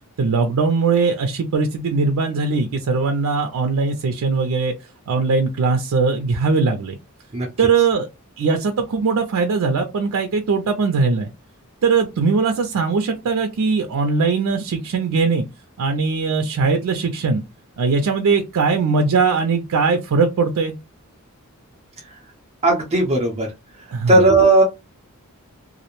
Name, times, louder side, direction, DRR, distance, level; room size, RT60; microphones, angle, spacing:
voice 1, 0.2-4.7 5.1-7.0 7.6-8.1 8.4-11.3 11.8-15.4 15.8-17.4 17.8-20.7 23.9-24.1, right 4 dB, 85° right, 0.4 m, -20 dB
voice 2, 22.6-23.5 23.8-24.6, right 2 dB, 25° right, 0.5 m, -16 dB
2.4 x 2.0 x 2.9 m
head